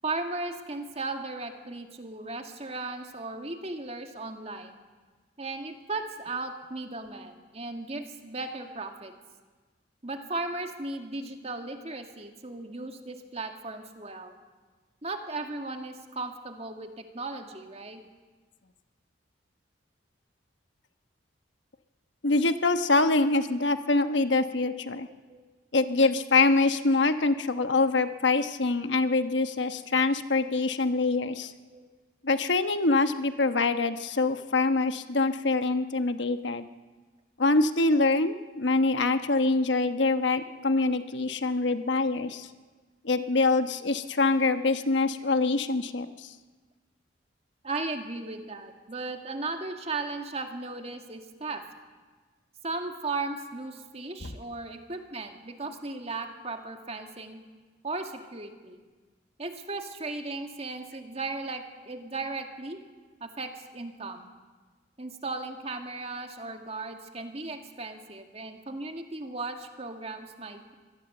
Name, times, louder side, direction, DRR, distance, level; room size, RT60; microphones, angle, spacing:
voice 1, 0.0-4.8 5.4-9.1 10.0-14.4 15.0-18.0 25.3-25.4 31.7-31.9 40.5-40.6 47.6-51.6 52.6-57.4 57.8-58.8 59.4-62.8 63.2-64.3 65.0-70.7, right 3 dB, 35° right, 5 dB, 2.1 m, -36 dB
voice 2, 22.2-25.1 25.7-31.5 32.2-36.7 37.4-42.5 43.0-46.3 54.2-54.3, left 3 dB, 75° left, 9 dB, 1.1 m, -25 dB
25.0 x 18.5 x 7.9 m, 1.3 s
head